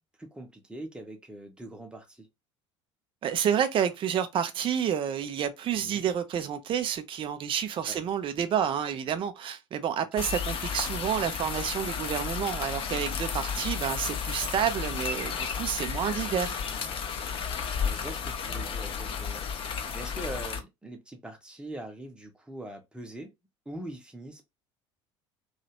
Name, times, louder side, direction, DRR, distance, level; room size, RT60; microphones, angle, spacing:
voice 1, 0.2-2.3 5.8-6.1 7.9-8.0 17.8-19.4 19.9-23.3 23.7-24.4, right 1 dB, 5° right, 0.9 m, -42 dB
voice 2, 3.2-16.6, right 8 dB, 35° right, 0.5 m, -29 dB
sound 1, 10.2-20.6, left 6 dB, 35° left, 0.6 m, -33 dB
2.8 x 2.4 x 2.8 m
figure-of-eight pair, 65°, 16 cm